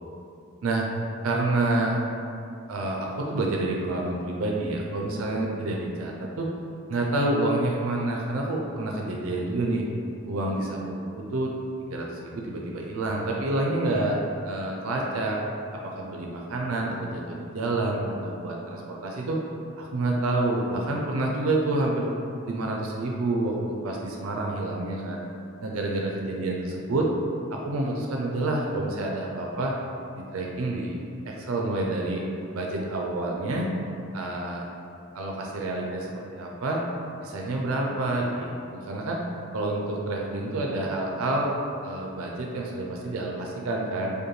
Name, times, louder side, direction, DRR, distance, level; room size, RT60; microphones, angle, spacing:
voice 1, 1.2-2.0 2.7-6.5 6.9-9.8 10.3-11.5 11.9-14.2 14.4-15.4 15.7-19.4 19.8-22.1 22.5-25.2 25.6-27.1 27.5-29.7 30.2-32.2 32.5-33.7 34.1-34.6 35.1-36.8 37.2-39.2 39.5-41.6 41.8-44.1, right 2 dB, 85° right, -1 dB, 0.5 m, -28 dB
5.1 x 2.2 x 3.1 m, 2.5 s
head